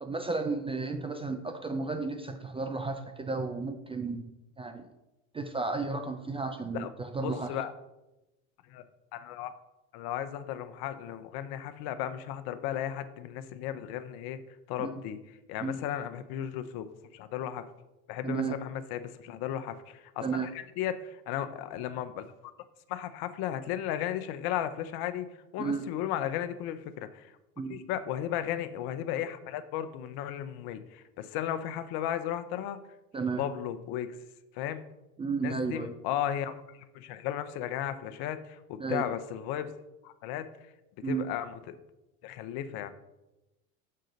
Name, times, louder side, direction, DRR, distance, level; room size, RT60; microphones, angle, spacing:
voice 1, 0.0-4.9 5.3-7.5 14.8-14.9 15.6-15.8 18.2-18.6 20.2-20.5 25.6-25.8 27.6-27.8 33.1-33.4 35.2-35.9 38.8-39.0 41.0-41.3, right 4 dB, 15° right, 6 dB, 0.3 m, -33 dB
voice 2, 7.2-7.7 8.7-8.8 9.1-9.5 9.9-14.4 14.7-15.2 15.5-17.7 18.1-22.2 22.9-25.3 25.5-27.3 27.7-32.8 33.4-34.2 34.5-34.8 35.4-39.7 40.0-40.7 41.0-41.8 42.2-42.9, left 10 dB, 60° left, 11 dB, 0.7 m, -35 dB
6.6 x 3.8 x 5.1 m, 0.98 s
hypercardioid pair, 85°, 43 cm